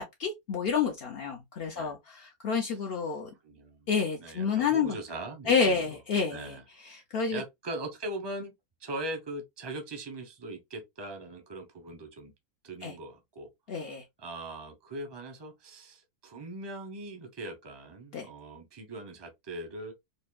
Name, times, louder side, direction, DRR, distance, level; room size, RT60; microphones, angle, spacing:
voice 1, 0.0-3.3 3.9-5.0 5.5-6.6 6.8-7.4 12.8-12.9 13.7-14.0 18.1-18.3, left 5 dB, 70° left, 0.5 m, -29 dB
voice 2, 3.4-3.9 4.2-6.0 6.3-6.6 7.3-8.5 8.8-12.3 12.6-13.5 14.2-19.9, right 2 dB, 30° right, 0.5 m, -40 dB
5.0 x 2.1 x 2.3 m
omnidirectional pair, 1.7 m